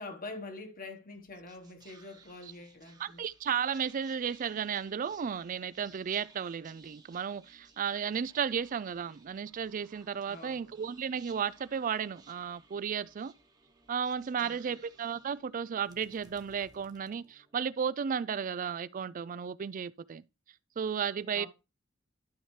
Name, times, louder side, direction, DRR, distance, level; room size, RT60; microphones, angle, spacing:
voice 1, 0.0-3.2 10.3-10.7 14.3-14.8 21.3-21.5, left 2 dB, 45° left, 1.3 m, -45 dB
Whispering, 1.1-17.7, right 3 dB, 20° right, 1.0 m, -60 dB
voice 2, 3.0-13.3 13.9-20.2 20.8-21.5, right 7 dB, 40° right, 0.4 m, -34 dB
12.0 x 5.7 x 3.2 m
head